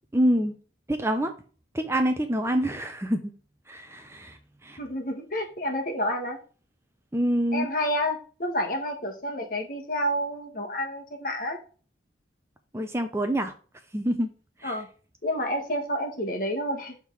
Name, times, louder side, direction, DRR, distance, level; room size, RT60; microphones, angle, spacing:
voice 1, 0.1-0.5 0.9-1.3 1.7-3.3 3.7-4.8 7.1-7.7 12.7-13.5 13.9-14.3 14.6-14.7, equal, 15° right, 0.5 m, -26 dB
voice 2, 4.8-6.4 7.5-11.6 14.6-14.9 15.2-16.9, equal, 45° left, 1.5 m, -29 dB
6.4 x 3.6 x 4.7 m
head